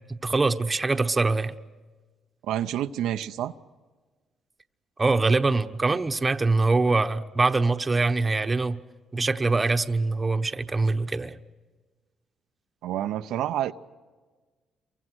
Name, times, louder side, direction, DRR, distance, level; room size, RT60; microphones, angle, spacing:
voice 1, 0.1-1.5 5.0-8.8 9.1-11.4, right 3 dB, 25° right, 8 dB, 1.1 m, -23 dB
voice 2, 2.4-3.5 12.8-13.7, right 12 dB, 85° right, 8 dB, 0.7 m, -28 dB
28.5 x 24.0 x 6.3 m, 1.4 s
cardioid pair, 90°, 0 cm